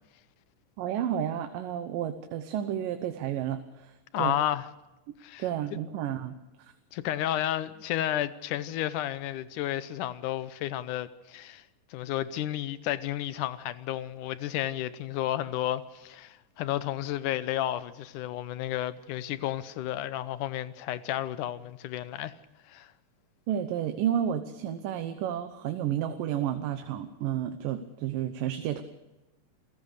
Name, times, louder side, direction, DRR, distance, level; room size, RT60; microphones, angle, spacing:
voice 1, 0.8-4.4 5.4-6.7 23.5-28.8, right 10 dB, 85° right, 2.7 m, -31 dB
voice 2, 4.1-4.7 5.2-5.4 6.9-11.6 11.9-22.3 22.7-22.9, left 13 dB, 75° left, 2.3 m, -32 dB
28.0 x 16.5 x 6.6 m
omnidirectional pair, 3.8 m